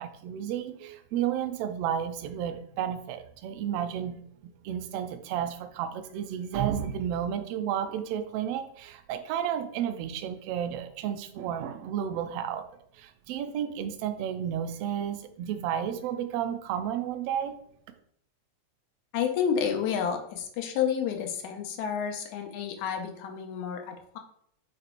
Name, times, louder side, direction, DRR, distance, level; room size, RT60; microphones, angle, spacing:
voice 1, 0.0-12.6 12.9-17.6, right 9 dB, 80° right, 8 dB, 1.4 m, -32 dB
voice 2, 19.1-24.2, left 8 dB, 90° left, 4 dB, 2.2 m, -30 dB
6.7 x 3.3 x 4.4 m, 0.68 s
omnidirectional pair, 3.3 m